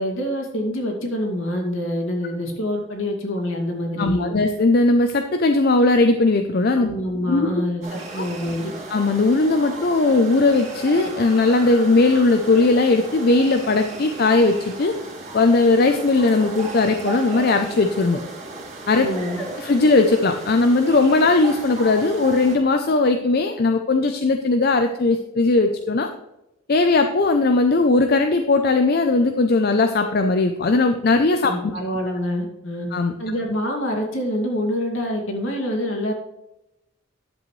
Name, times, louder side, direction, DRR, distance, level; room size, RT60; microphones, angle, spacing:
voice 1, 0.0-4.3 6.8-8.7 18.9-19.4 31.5-32.9 33.2-36.1, equal, 65° left, 0 dB, 2.3 m, -26 dB
voice 2, 4.0-6.9 7.3-7.6 8.2-8.3 8.9-14.9 15.3-18.2 18.9-19.1 19.4-26.1 26.7-31.5 32.9-33.1, left 3 dB, 45° left, 6 dB, 0.5 m, -18 dB
sound 1, 7.8-22.6, right 2 dB, 35° right, 2.3 m, -35 dB
11.0 x 7.7 x 3.2 m, 0.91 s
head